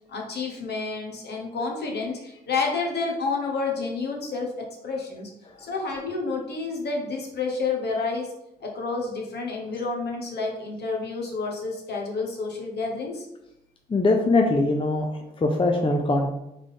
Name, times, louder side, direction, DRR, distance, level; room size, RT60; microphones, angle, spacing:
voice 1, 0.1-5.3 5.6-8.3 8.6-13.3, left 4 dB, 60° left, 0 dB, 1.3 m, -29 dB
voice 2, 13.9-16.3, left 2 dB, 30° left, 2 dB, 0.7 m, -22 dB
3.6 x 3.6 x 3.7 m, 0.84 s
supercardioid pair, 60°, 19 cm